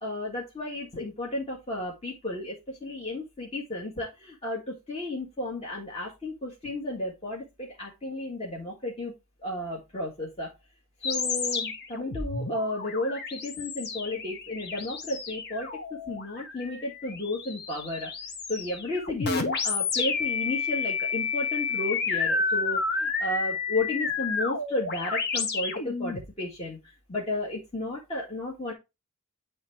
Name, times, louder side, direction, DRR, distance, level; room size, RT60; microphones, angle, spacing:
voice 1, 0.0-9.1 9.4-10.5 11.0-18.1 18.5-28.7, left 1 dB, 25° left, -3 dB, 1.5 m, -33 dB
sound 1, 11.0-26.3, left 4 dB, 45° left, 1.1 m, -31 dB
9.3 x 3.3 x 4.6 m, 0.24 s
head